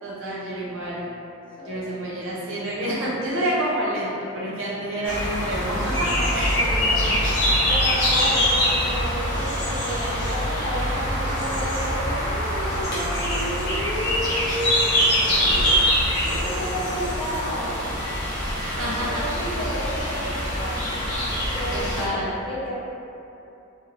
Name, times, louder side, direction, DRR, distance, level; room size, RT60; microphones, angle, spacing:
voice 1, 0.0-1.1 1.6-6.6 18.6-19.1 21.7-22.3, right 1 dB, 70° right, -7 dB, 0.7 m, -28 dB
voice 2, 1.6-2.2 6.1-7.2 7.7-15.8 16.2-17.8 18.8-21.2 21.5-22.7, equal, 25° left, -9 dB, 0.6 m, -32 dB
sound 1, 5.0-22.0, equal, 60° left, 0.9 m, -24 dB
2.4 x 2.3 x 3.1 m, 2.8 s
head